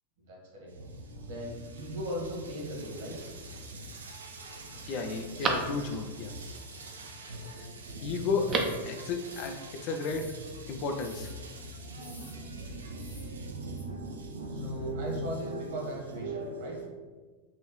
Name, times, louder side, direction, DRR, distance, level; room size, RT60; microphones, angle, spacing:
voice 1, 0.3-0.7 1.2-3.1 8.4-8.6 9.8-9.9 14.5-16.8, right 1 dB, 55° right, -1 dB, 1.4 m, -38 dB
sound 1, 0.7-16.9, right 2 dB, 70° right, 0.6 m, -42 dB
Telephone, 3.1-3.7 4.2-4.3 4.7-6.2 8.2-8.9 9.2-9.3, right 4 dB, 30° right, 0.6 m, -35 dB
voice 2, 4.9-6.3 7.3-7.4 8.0-8.5 8.8-10.3 10.7-11.3, left 4 dB, 45° left, 5 dB, 0.4 m, -33 dB
sound 2, 8.5-8.8 9.2-10.5 11.0-11.4 12.0-12.4 12.9-13.3 13.8-13.9, left 2 dB, 15° left, 0.9 m, -54 dB
6.3 x 2.6 x 3.0 m, 1.4 s
figure-of-eight pair, 90°, 0 cm